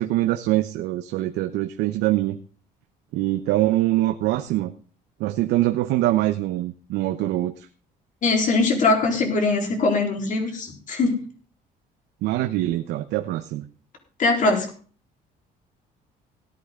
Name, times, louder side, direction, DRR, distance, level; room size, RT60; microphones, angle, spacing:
voice 1, 0.0-2.4 3.1-4.7 5.2-7.7 12.2-13.7, right 15 dB, 85° right, 8 dB, 1.0 m, -23 dB
voice 2, 8.2-11.2 14.2-14.7, left 3 dB, 50° left, 2 dB, 4.1 m, -21 dB
17.5 x 10.0 x 3.8 m, 0.40 s
cardioid pair, 110°, 17 cm